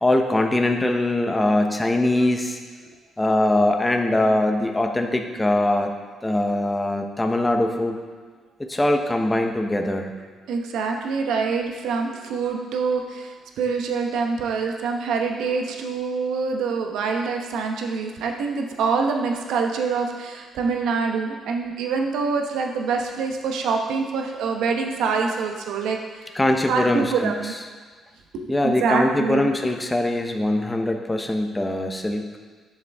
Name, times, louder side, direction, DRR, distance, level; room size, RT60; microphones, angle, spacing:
voice 1, 0.0-2.6 3.2-5.9 6.2-8.0 8.6-10.1 26.3-27.3 28.5-32.4, left 1 dB, 15° left, 4 dB, 0.9 m, -22 dB
voice 2, 10.5-26.0 26.7-27.5 28.3-29.5, right 5 dB, 85° right, 2 dB, 1.0 m, -25 dB
11.0 x 6.8 x 3.5 m, 1.5 s
cardioid pair, 90°, 0 cm